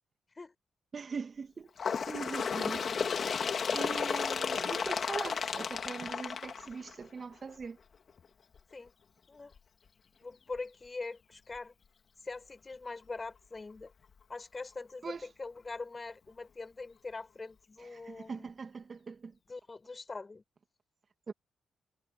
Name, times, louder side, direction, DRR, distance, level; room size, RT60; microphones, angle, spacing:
voice 1, 0.9-7.8 15.0-15.3 17.8-19.4 21.3-21.4, right 5 dB, 45° right, 2.3 m, -42 dB
Bird, 1.8-7.2 8.1-8.2 8.6-8.7 9.6-9.7 10.6-10.7 11.5-11.6, left 6 dB, 55° left, 2.9 m, -33 dB
voice 2, 10.2-11.8 12.2-13.9 14.3-18.5 19.5-20.4, left 3 dB, 30° left, 5.7 m, -43 dB
supercardioid pair, 60°, 0 cm